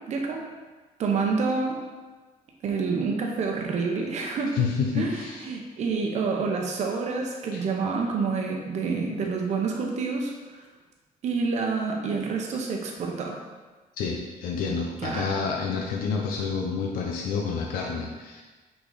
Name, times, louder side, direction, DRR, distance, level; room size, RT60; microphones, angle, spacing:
voice 1, 0.1-0.4 1.0-1.8 2.6-4.6 4.9-10.6 11.2-13.4 14.7-15.3, right 4 dB, 50° right, 1 dB, 0.9 m, -28 dB
voice 2, 4.5-5.5 7.5-7.6 13.9-18.4, left 5 dB, 80° left, 0 dB, 0.7 m, -29 dB
6.1 x 4.0 x 4.0 m, 1.3 s
cardioid pair, 150°, 15 cm